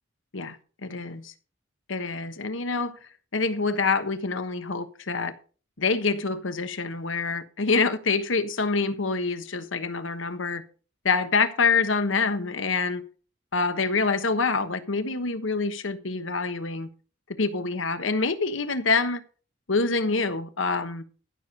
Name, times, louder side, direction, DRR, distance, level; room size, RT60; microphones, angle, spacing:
voice 1, 0.3-1.3 1.9-5.3 5.8-10.6 11.0-13.1 13.5-16.9 17.4-19.2 19.7-21.0, left 4 dB, 90° left, 1.3 m, -26 dB
14.5 x 6.9 x 5.3 m
head